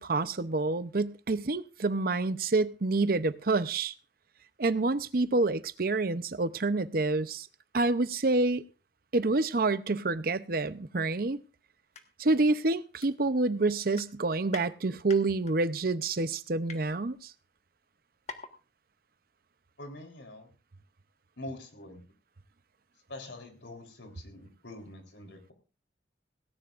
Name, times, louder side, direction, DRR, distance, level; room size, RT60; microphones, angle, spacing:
voice 1, 0.0-3.9 4.6-7.5 7.7-8.6 9.1-11.4 12.2-17.3, right 3 dB, 55° right, 0.7 m, -28 dB
sound 1, 11.8-12.0 12.4-12.5 13.0-13.6 13.9-14.7 15.1-15.5 16.2-16.8 17.5-17.6 17.8-17.9 18.3-18.6 18.9-19.0, left 4 dB, 40° left, 1.5 m, -45 dB
voice 2, 19.8-20.5 21.4-22.0 23.1-25.5, left 1 dB, 85° left, 3.8 m, -45 dB
17.5 x 17.5 x 2.5 m
head